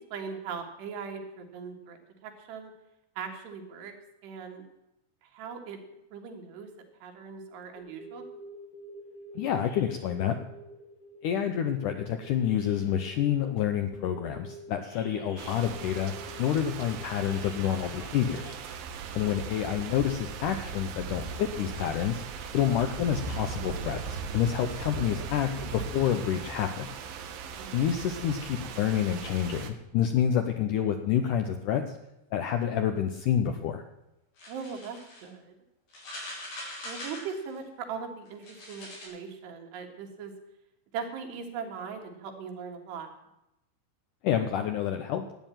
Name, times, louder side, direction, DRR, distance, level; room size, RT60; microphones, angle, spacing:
voice 1, 0.1-2.7 3.2-3.9 4.2-4.6 5.2-5.8 6.1-6.7 7.0-8.2 15.3-15.4 19.2-19.3 24.9-25.1 27.3-27.8 34.5-35.6 36.8-40.3 40.9-43.1, right 6 dB, 85° right, 3 dB, 3.9 m, -40 dB
sound 1, 7.8-13.4 13.9-18.6, right 1 dB, 40° left, 2.9 m, -47 dB
voice 2, 9.4-10.4 11.2-16.1 16.4-18.5 19.1-22.2 22.5-27.0 27.7-31.8 32.3-33.8 44.2-45.3, left 9 dB, 85° left, 7 dB, 1.8 m, -28 dB
sound 2, 15.4-29.7, right 6 dB, 70° right, 2.7 m, -39 dB
sound 3, 34.4-35.3 35.9-37.6 38.3-39.1, left 1 dB, 60° left, 7.1 m, -42 dB
12.5 x 9.4 x 9.0 m, 0.88 s
omnidirectional pair, 4.7 m